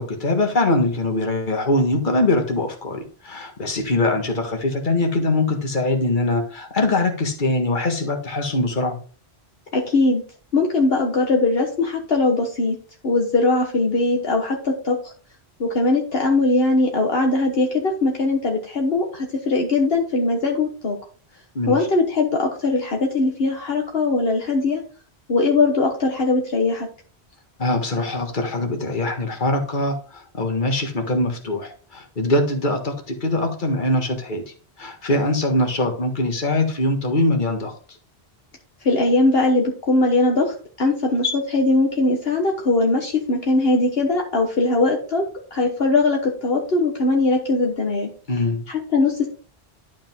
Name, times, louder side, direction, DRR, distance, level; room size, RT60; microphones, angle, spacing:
voice 1, 0.0-9.0 21.6-21.8 27.6-34.4 34.8-37.7 48.3-48.6, left 2 dB, 50° left, 4 dB, 1.8 m, -22 dB
voice 2, 9.7-10.2 10.5-12.7 13.0-15.1 15.6-21.0 21.7-24.8 25.3-26.9 38.8-45.3 45.5-48.1 48.7-49.3, left 2 dB, 65° left, 2 dB, 1.5 m, -20 dB
11.5 x 5.3 x 3.6 m, 0.40 s
omnidirectional pair, 1.1 m